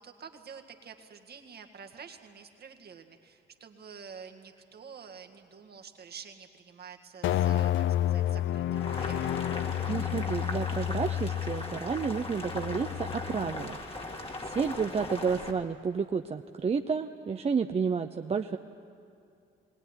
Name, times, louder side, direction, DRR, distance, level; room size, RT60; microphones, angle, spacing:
voice 1, 0.0-9.4, right 6 dB, 55° right, 4 dB, 1.9 m, -48 dB
sound 1, 7.2-13.7, left 12 dB, 75° left, 0.6 m, -30 dB
Boiling, 8.7-15.5, left 2 dB, 30° left, 2.1 m, -39 dB
voice 2, 9.9-13.8 14.5-18.6, right 5 dB, 30° right, 6 dB, 0.7 m, -31 dB
21.0 x 18.5 x 9.8 m, 2.5 s
cardioid pair, 90°, 20 cm